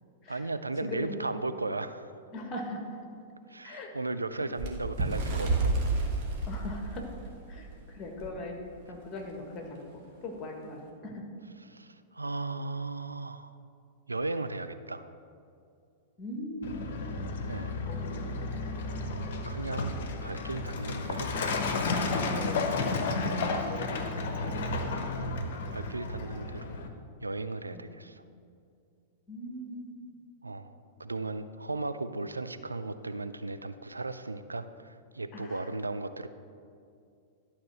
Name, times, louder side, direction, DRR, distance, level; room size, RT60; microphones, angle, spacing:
voice 1, 0.3-2.1 3.5-5.8 11.7-13.5 14.1-15.1 17.5-17.7 19.5-19.9 20.2-21.3 25.0-25.4 25.7-26.8 27.2-28.2 30.4-30.7 31.0-36.3, right 2 dB, 80° right, 11 dB, 0.3 m, -36 dB
voice 2, 0.9-1.2 2.3-3.0 3.6-3.9 4.4-4.5 6.5-7.0 7.5-8.5 8.9-9.6 9.9-11.2 16.2-16.9 17.9-18.4 22.2-22.7 23.2-24.8 27.7-27.8 29.3-30.0 35.3-35.6, left 1 dB, 25° left, 2 dB, 1.6 m, -40 dB
Bird, 4.6-7.7 8.2-8.4 8.7-8.9 9.7-9.8, right 3 dB, 40° right, 1.5 m, -30 dB
Truck, 16.6-26.9, left 3 dB, 50° left, 0.9 m, -32 dB
11.5 x 4.3 x 6.1 m, 2.4 s
figure-of-eight pair, 100°, 0 cm